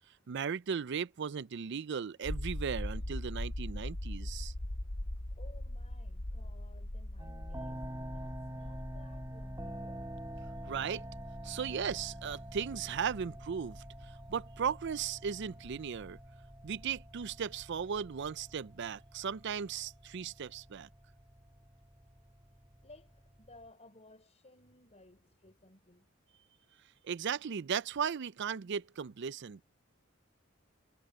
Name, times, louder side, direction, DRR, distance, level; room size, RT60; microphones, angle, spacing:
voice 1, 0.3-4.5 10.7-11.1 11.4-13.7 14.3-16.2 16.6-20.9 27.0-29.6, right 7 dB, 60° right, 0.5 m, -36 dB
sound 1, 2.2-18.3 18.6-18.7, left 1 dB, 80° left, 1.8 m, -42 dB
voice 2, 5.4-10.2 12.5-12.6 13.1-13.4 22.8-26.1, left 2 dB, 35° left, 5.7 m, -59 dB
sound 2, 7.2-23.7, right 1 dB, 15° right, 6.5 m, -47 dB
head